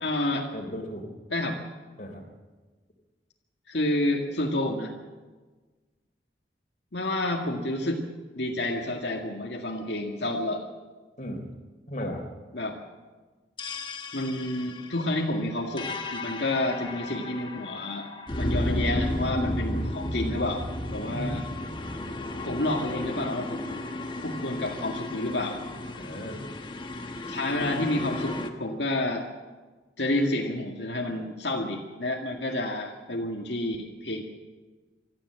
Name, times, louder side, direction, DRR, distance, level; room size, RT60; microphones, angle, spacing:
voice 1, 0.0-0.5 1.3-1.5 3.7-4.9 6.9-8.0 8.3-10.6 12.5-12.8 14.1-18.1 18.4-20.6 20.9-21.4 22.4-23.9 24.2-25.6 27.3-29.3 30.0-34.2, left 1 dB, 80° left, 0 dB, 2.1 m, -29 dB
voice 2, 0.5-1.1 2.0-2.2 11.2-11.5 11.9-12.2 21.1-21.4 25.9-26.4, equal, 45° left, 2 dB, 3.7 m, -35 dB
sound 1, 13.6-28.5, left 1 dB, 25° left, 1.4 m, -33 dB
25.0 x 14.0 x 7.7 m, 1.3 s
head